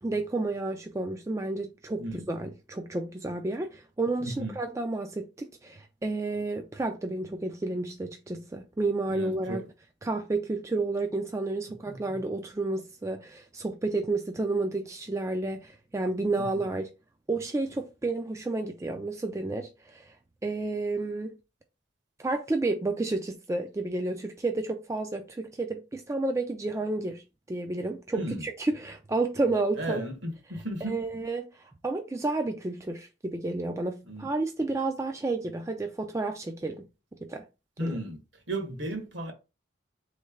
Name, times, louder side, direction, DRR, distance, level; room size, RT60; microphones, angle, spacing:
voice 1, 0.0-9.6 10.0-16.9 17.3-20.1 20.4-21.3 22.2-27.2 27.5-30.0 30.8-36.8 37.2-37.4 37.8-38.0, right 2 dB, 15° right, 0.3 m, -31 dB
voice 2, 4.2-4.6 9.1-9.6 11.9-12.2 16.4-16.5 28.1-28.4 29.8-31.0 34.1-34.3 37.8-38.2 38.5-39.3, right 1 dB, 65° right, 1.2 m, -34 dB
3.9 x 3.2 x 3.5 m
head